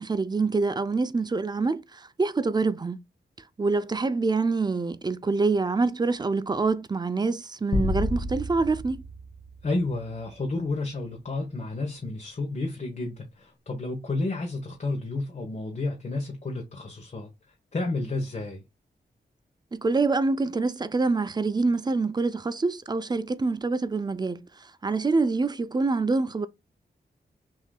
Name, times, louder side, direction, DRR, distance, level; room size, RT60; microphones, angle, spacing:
voice 1, 0.0-3.0 3.6-9.0 19.7-24.4 24.8-26.5, right 3 dB, 25° right, 0.4 m, -26 dB
sound 1, 7.7-10.3, left 2 dB, 70° left, 1.0 m, -31 dB
voice 2, 9.6-18.6, left 2 dB, 45° left, 0.9 m, -31 dB
6.1 x 2.7 x 2.2 m
wide cardioid pair, 125°, 18 cm